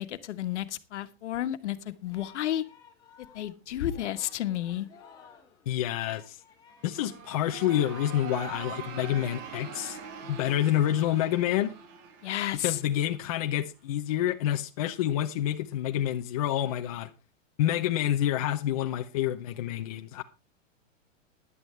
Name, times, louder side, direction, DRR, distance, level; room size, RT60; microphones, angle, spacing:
voice 1, 0.0-2.6 3.3-4.9 12.2-12.8, left 12 dB, 60° left, 1.5 m, -32 dB
Singing, 1.6-8.5, left 6 dB, 10° left, 2.6 m, -56 dB
voice 2, 5.7-6.4 6.8-11.7 12.5-17.1 17.6-20.2, left 12 dB, 30° left, 0.6 m, -28 dB
sound 1, 6.7-13.5, right 7 dB, 15° right, 0.5 m, -43 dB
16.0 x 11.0 x 3.3 m
supercardioid pair, 180°, 38 cm